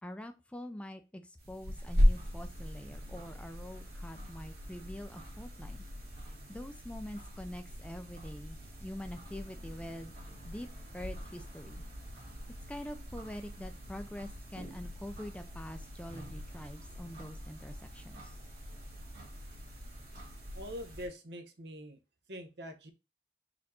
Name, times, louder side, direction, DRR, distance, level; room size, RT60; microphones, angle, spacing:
voice 1, 0.0-5.9 6.2-10.1 10.4-10.7 10.9-11.8 12.7-18.4, left 1 dB, 5° left, 7 dB, 0.3 m, -45 dB
sound 1, 1.4-21.1, equal, 55° right, 1.6 m, -38 dB
voice 2, 20.5-22.0 22.3-22.9, equal, 75° right, 6 dB, 0.8 m, -44 dB
4.2 x 2.6 x 4.2 m, 0.28 s
head